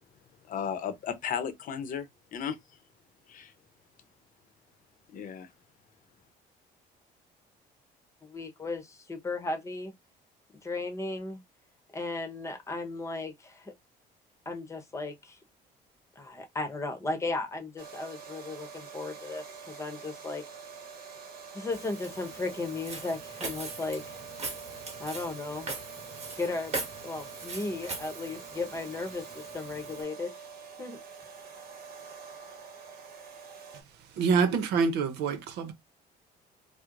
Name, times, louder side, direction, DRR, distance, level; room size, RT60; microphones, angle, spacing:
voice 1, 0.5-2.1 2.3-2.6 3.3-3.5 5.1-5.5, left 8 dB, 55° left, 0.7 m, -34 dB
voice 2, 8.2-9.9 10.6-11.4 11.9-13.7 14.5-15.4 16.2-20.4 21.5-24.2 25.0-25.7 26.4-26.8 27.0-30.3 30.8-31.0, left 3 dB, 15° left, 0.9 m, -35 dB
sound 1, 17.8-33.8, right 6 dB, 60° right, 1.0 m, -46 dB
Walk footsteps, 21.7-30.0, right 3 dB, 40° right, 1.3 m, -41 dB
voice 3, 34.0-35.7, right 5 dB, 85° right, 0.7 m, -26 dB
4.4 x 2.1 x 2.5 m
cardioid pair, 110°, 17 cm